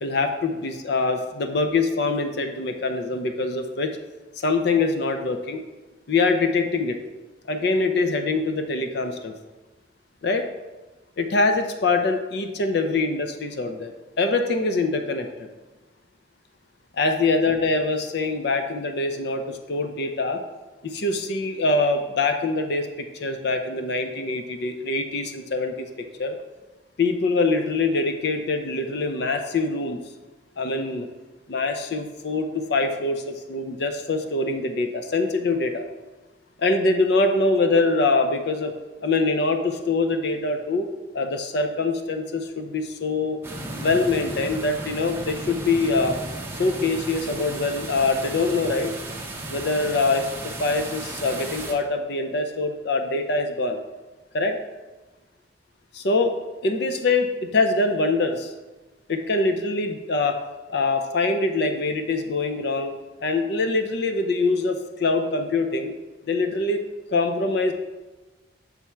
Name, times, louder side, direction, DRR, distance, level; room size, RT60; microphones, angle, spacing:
voice 1, 0.0-3.9 4.4-5.6 6.1-7.0 7.5-9.3 10.2-10.4 11.2-15.5 17.0-20.4 20.8-26.4 27.0-30.0 30.6-31.1 31.5-35.8 36.6-38.7 39.0-40.9 41.1-43.4 43.7-46.2 46.5-48.9 49.5-50.3 50.6-53.8 54.3-54.6 55.9-56.3 56.6-58.5 59.1-60.4 60.7-62.9 63.2-65.9 66.3-66.8 67.1-67.7, left 3 dB, 60° left, 6 dB, 0.5 m, -24 dB
sound 1, 43.4-51.7, right 2 dB, 10° right, 0.6 m, -35 dB
7.2 x 3.4 x 4.4 m, 1.2 s
head